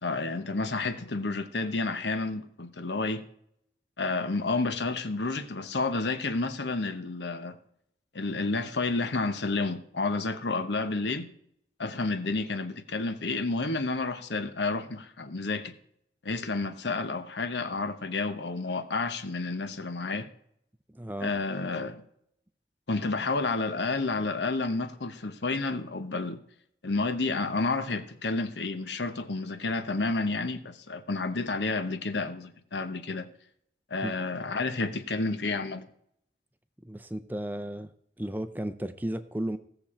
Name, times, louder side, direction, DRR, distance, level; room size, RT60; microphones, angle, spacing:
voice 1, 0.0-3.2 4.0-7.6 8.1-11.3 11.8-15.7 16.2-20.3 21.2-22.0 22.9-26.4 26.8-33.3 33.9-35.8, left 3 dB, 80° left, 1.0 m, -30 dB
voice 2, 20.9-21.3 34.0-34.2 36.8-37.9 38.2-39.6, right 1 dB, 10° right, 0.5 m, -34 dB
17.0 x 6.9 x 4.4 m
head